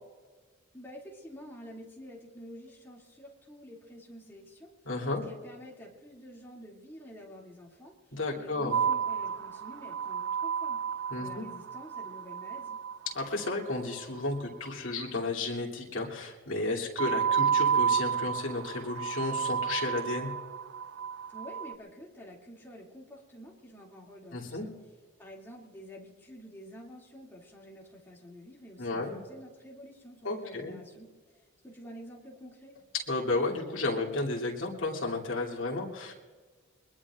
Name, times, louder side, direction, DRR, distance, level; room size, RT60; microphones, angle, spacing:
voice 1, 0.7-4.7 5.1-10.8 11.2-12.8 21.3-24.7 25.2-32.8, equal, 10° left, -3 dB, 2.5 m, -49 dB
voice 2, 4.8-5.2 8.1-8.8 11.1-11.5 13.1-20.3 24.3-24.7 28.8-29.2 30.2-30.8 32.9-36.1, left 2 dB, 60° left, -3 dB, 2.9 m, -33 dB
sound 1, 8.7-14.0 17.0-21.7, right 7 dB, 60° right, 0.4 m, -31 dB
23.5 x 21.0 x 2.5 m, 1.4 s
head